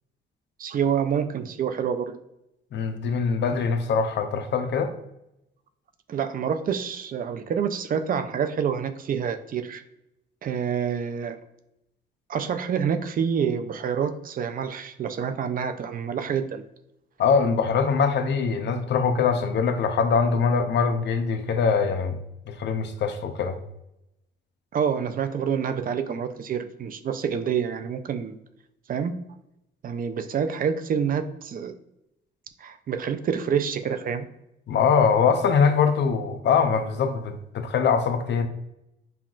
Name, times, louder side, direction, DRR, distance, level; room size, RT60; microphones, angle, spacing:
voice 1, 0.6-2.2 6.1-9.8 10.4-11.4 12.3-16.6 24.7-28.4 28.9-29.1 29.8-31.7 32.6-34.3, right 7 dB, 45° right, 10 dB, 0.4 m, -27 dB
voice 2, 2.7-4.9 17.2-22.2 22.5-23.6 34.7-38.5, left 5 dB, 60° left, 8 dB, 0.5 m, -23 dB
5.6 x 2.3 x 2.4 m, 0.85 s
cardioid pair, 90°, 20 cm